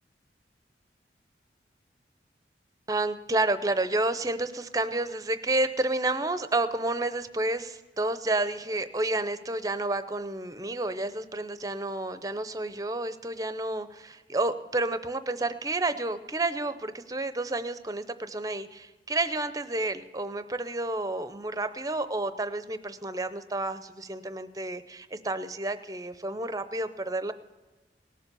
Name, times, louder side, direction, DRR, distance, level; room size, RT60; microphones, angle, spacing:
voice 1, 2.9-27.3, right 2 dB, 20° right, 11 dB, 0.6 m, -30 dB
18.5 x 7.3 x 6.9 m, 1.2 s
head